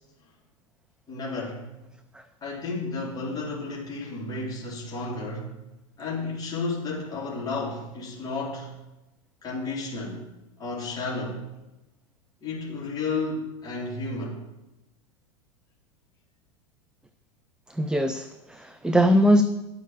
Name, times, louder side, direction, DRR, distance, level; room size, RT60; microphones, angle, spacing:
voice 1, 1.1-1.7 2.4-5.6 6.0-8.8 9.4-10.2 10.6-11.4 12.4-14.4, left 3 dB, 20° left, -6 dB, 3.4 m, -32 dB
voice 2, 17.7-19.4, equal, 5° right, 10 dB, 0.5 m, -21 dB
10.0 x 6.4 x 7.4 m, 1.0 s
hypercardioid pair, 105°, 18 cm